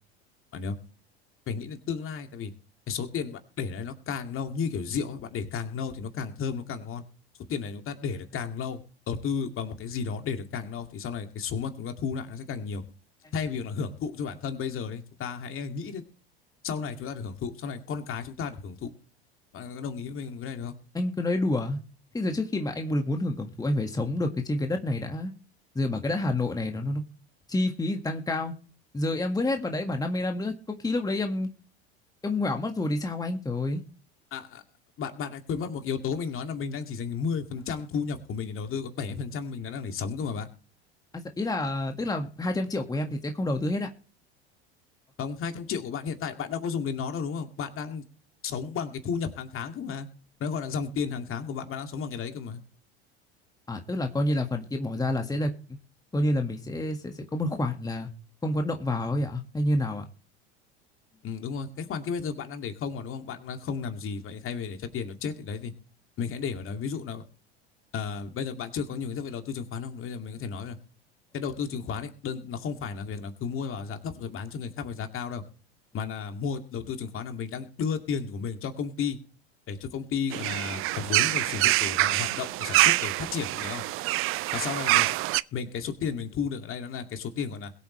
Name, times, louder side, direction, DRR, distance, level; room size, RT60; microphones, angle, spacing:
voice 1, 1.5-2.5 2.9-7.0 7.5-12.8 13.3-16.0 16.6-18.9 19.5-20.8 34.3-34.6 35.0-40.5 45.2-48.0 48.4-50.1 50.4-52.6 61.2-65.7 66.2-67.2 67.9-70.8 71.3-75.4 75.9-79.2 79.7-83.8 84.5-85.2 85.5-87.7, left 6 dB, 40° left, 6 dB, 2.4 m, -33 dB
voice 2, 20.9-21.8 22.1-25.3 25.7-27.0 27.5-28.5 28.9-30.5 30.8-31.5 32.2-33.8 41.1-43.9 53.7-55.5 56.1-58.1 58.4-60.0, left 1 dB, 10° left, 4 dB, 1.7 m, -28 dB
sound 1, 80.3-85.4, right 19 dB, 40° right, 0.5 m, -25 dB
22.0 x 8.1 x 3.2 m, 0.39 s
hypercardioid pair, 80°, 32 cm